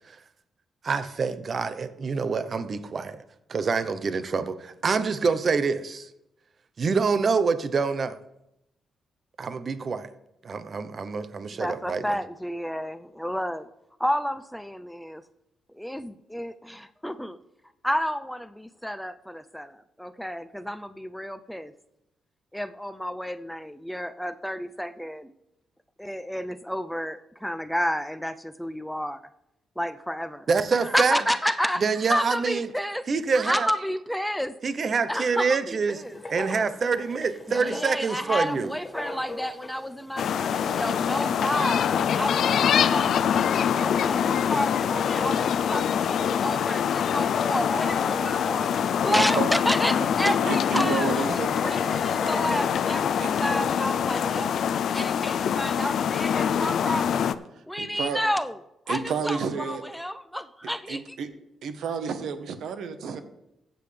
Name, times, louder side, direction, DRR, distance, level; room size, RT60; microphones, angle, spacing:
voice 1, 0.8-3.2 3.5-6.1 6.8-8.2 9.4-10.1 10.4-12.2 30.5-31.2 31.8-32.7 33.1-33.7 34.6-36.0 36.3-38.7, right 5 dB, 45° right, 0.8 m, -26 dB
voice 2, 11.6-13.7 14.0-15.2 15.8-17.4 17.8-21.7 22.5-25.3 26.0-29.2 29.8-30.5 30.9-31.8 32.1-33.0 33.4-34.6 35.1-36.2 37.5-41.9 42.1-54.6 54.9-57.3 57.7-58.6 58.9-61.2, equal, 5° left, 0.5 m, -30 dB
Writing, 35.9-54.7, left 1 dB, 25° left, 2.0 m, -39 dB
sound 1, 40.2-57.3, left 8 dB, 70° left, 0.4 m, -25 dB
voice 3, 49.1-49.5 50.2-51.5 51.9-52.2 53.2-53.3 54.9-55.1 57.5-58.2 58.9-59.8 60.9-61.3 61.6-63.2, right 6 dB, 80° right, 1.1 m, -31 dB
15.0 x 7.7 x 3.3 m
cardioid pair, 85°, 0 cm